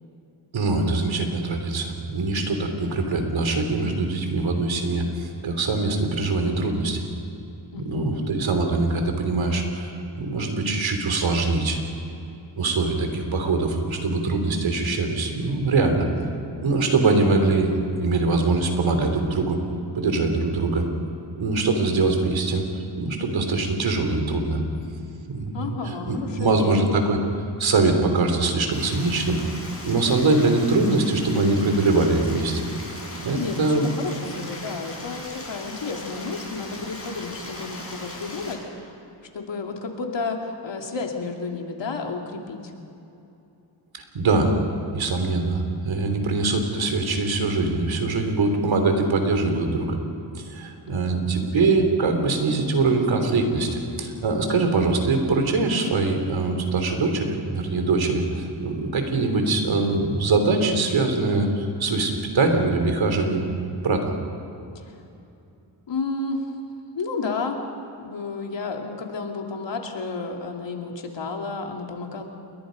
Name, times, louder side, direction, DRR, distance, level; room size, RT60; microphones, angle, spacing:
voice 1, 0.5-7.0 7.7-9.9 10.2-11.8 12.6-16.1 16.6-19.6 19.9-20.8 21.4-22.6 22.9-24.6 25.3-25.8 26.0-27.2 27.6-29.4 29.8-32.7 33.2-33.9 44.1-44.6 44.9-50.0 50.3-64.1, right 3 dB, 85° right, 5 dB, 3.3 m, -23 dB
voice 2, 7.7-8.3 25.5-26.9 33.3-39.0 39.3-42.7 50.9-51.5 64.7-64.9 65.9-66.5 66.9-67.6 68.0-72.2, left 4 dB, 70° left, 2 dB, 2.9 m, -31 dB
Stream, 28.7-38.5, left 2 dB, 30° left, 6.1 m, -38 dB
28.5 x 22.0 x 5.2 m, 2.8 s
wide cardioid pair, 95°, 45 cm